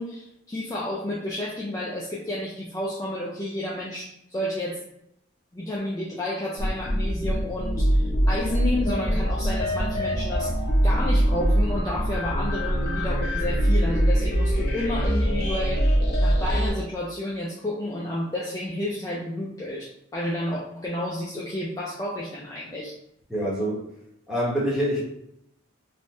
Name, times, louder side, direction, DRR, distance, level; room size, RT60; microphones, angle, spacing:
voice 1, 0.0-4.8 5.5-10.5 10.8-15.9 16.2-22.9, left 1 dB, 15° left, -5 dB, 0.3 m, -31 dB
sound 1, 6.6-16.7, equal, 50° left, 0.7 m, -23 dB
voice 2, 23.3-23.9 24.3-25.0, equal, ahead, -7 dB, 0.8 m, -25 dB
3.2 x 2.0 x 2.7 m, 0.77 s
head